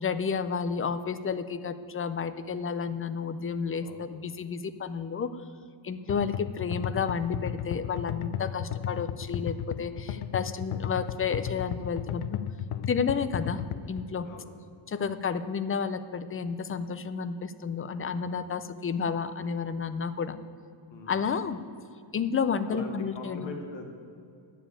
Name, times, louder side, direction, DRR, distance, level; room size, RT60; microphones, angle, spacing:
voice 1, 0.0-5.4 5.8-12.4 12.9-13.6 13.9-14.3 14.9-20.4 21.1-21.6 22.1-23.6, left 6 dB, 30° left, 12 dB, 0.4 m, -31 dB
sound 1, 6.1-14.0, left 9 dB, 80° left, 0.6 m, -34 dB
voice 2, 20.9-21.3 22.7-23.9, left 2 dB, 60° left, 2 dB, 1.7 m, -42 dB
9.9 x 7.1 x 8.9 m, 2.4 s
wide cardioid pair, 160°, 49 cm